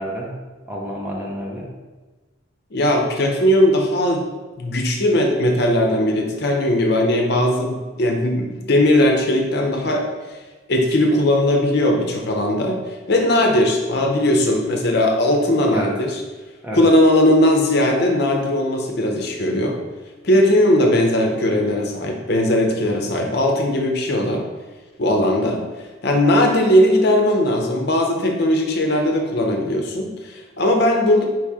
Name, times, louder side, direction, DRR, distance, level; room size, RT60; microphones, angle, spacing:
voice 1, 0.0-1.7 15.7-16.0 16.6-16.8, equal, 10° right, -3 dB, 0.5 m, -29 dB
voice 2, 2.7-4.2 4.6-10.1 10.7-12.8 13.1-16.1 16.7-19.8 20.2-24.4 25.0-25.6 26.0-31.2, left 1 dB, 55° left, 2 dB, 0.6 m, -18 dB
4.6 x 3.0 x 3.5 m, 1.3 s
head